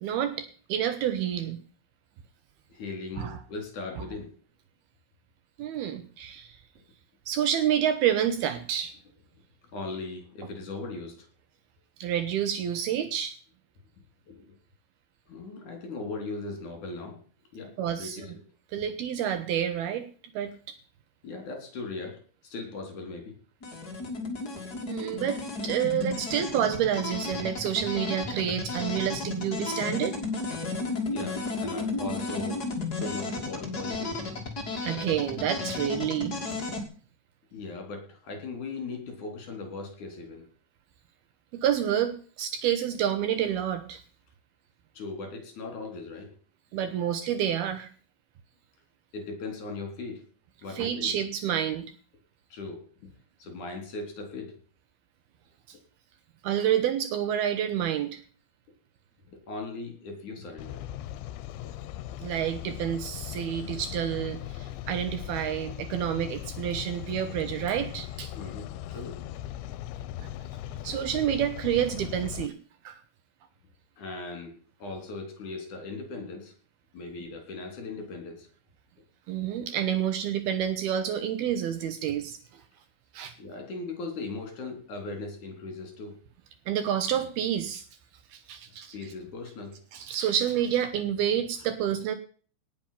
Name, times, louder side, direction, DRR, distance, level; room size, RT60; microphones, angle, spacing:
voice 1, 0.0-1.6 3.2-3.3 5.6-6.6 7.3-8.9 12.0-13.3 17.8-18.3 18.7-20.1 20.3-20.5 24.9-30.2 34.8-36.4 41.5-44.0 46.7-47.9 50.8-51.9 56.4-58.2 62.2-68.3 70.8-72.5 72.8-73.0 79.3-82.4 83.1-83.3 86.7-87.8 88.3-88.9 89.9-92.2, right 10 dB, 70° right, 10 dB, 2.7 m, -28 dB
voice 2, 2.7-4.3 9.7-11.3 14.3-14.5 15.3-17.2 17.5-18.3 21.2-23.3 24.2-24.7 31.1-32.6 33.0-34.3 37.5-40.5 44.9-46.3 49.1-50.2 50.6-51.1 52.5-53.1 53.4-54.5 59.3-60.9 68.3-69.2 74.0-76.5 76.9-78.5 83.4-86.2 88.9-89.8, left 3 dB, 45° left, 3 dB, 5.0 m, -39 dB
sound 1, 23.6-36.8, left 3 dB, 25° left, 2.3 m, -33 dB
sound 2, 60.6-72.5, left 12 dB, 80° left, 3.0 m, -39 dB
18.5 x 7.7 x 5.9 m, 0.42 s
omnidirectional pair, 5.2 m